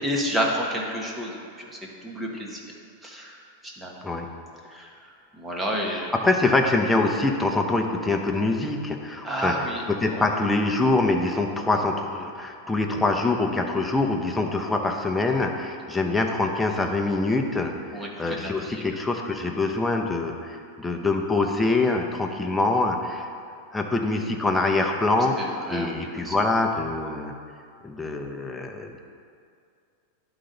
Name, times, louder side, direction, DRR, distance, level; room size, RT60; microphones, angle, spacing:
voice 1, 0.0-2.6 3.0-3.4 3.6-4.0 4.7-4.9 5.3-6.1 9.2-9.8 10.1-10.3 17.9-18.8 25.4-26.4, equal, 10° right, -1 dB, 1.2 m, -30 dB
voice 2, 5.9-17.8 18.2-23.3 23.7-25.3 25.7-27.3 27.8-29.0, left 2 dB, 10° left, 2 dB, 0.7 m, -24 dB
11.0 x 3.9 x 3.9 m, 2.3 s
hypercardioid pair, 125°, 0 cm